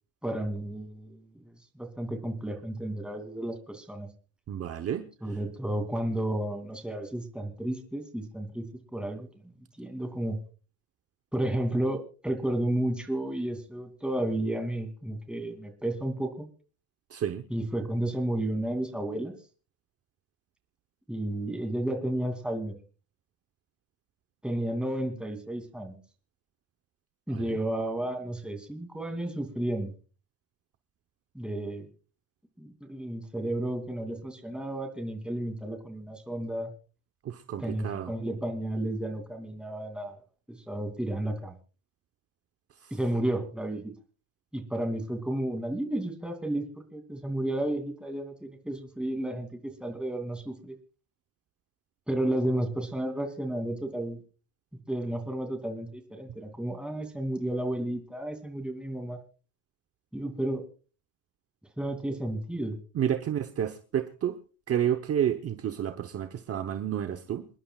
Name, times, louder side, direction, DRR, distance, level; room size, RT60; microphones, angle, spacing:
voice 1, 0.2-4.1 5.2-8.7 8.9-9.3 9.8-10.4 11.3-16.5 17.5-19.3 21.1-22.7 24.4-26.0 27.3-29.9 31.3-31.9 32.6-36.7 37.6-40.2 40.5-41.5 42.9-43.9 44.5-46.7 46.9-50.7 52.1-54.2 54.9-59.2 60.1-60.6 61.8-62.8, right 1 dB, ahead, 4 dB, 2.7 m, -32 dB
voice 2, 4.5-5.0 17.1-17.4 27.3-27.5 37.2-38.1 42.8-42.9 62.9-64.4 64.7-67.5, right 10 dB, 40° right, 8 dB, 1.0 m, -30 dB
28.0 x 11.0 x 2.4 m, 0.35 s
cardioid pair, 130°, 39 cm